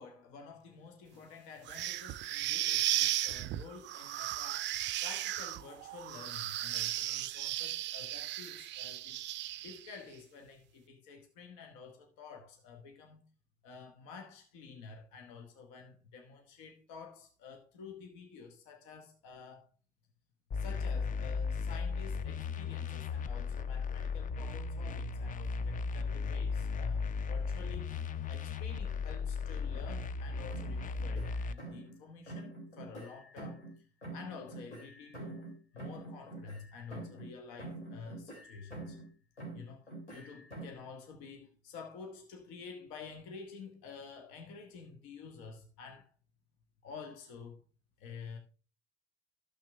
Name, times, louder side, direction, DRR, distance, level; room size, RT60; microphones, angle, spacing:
voice 1, 0.0-9.2 9.6-13.2 13.6-19.7 20.5-28.0 28.3-33.7 34.1-39.0 39.5-46.1 46.8-47.6 48.0-48.4, left 5 dB, 60° left, 1.3 m, -50 dB
sound 1, 1.7-10.0, right 14 dB, 35° right, 0.4 m, -35 dB
sound 2, 20.5-31.5, left 5 dB, 25° left, 0.5 m, -36 dB
sound 3, 30.5-32.0 32.3-33.8 34.0-37.3 37.6-39.1 39.4-40.9, right 2 dB, 90° left, 2.9 m, -46 dB
13.0 x 5.9 x 3.4 m
figure-of-eight pair, 60°, 33 cm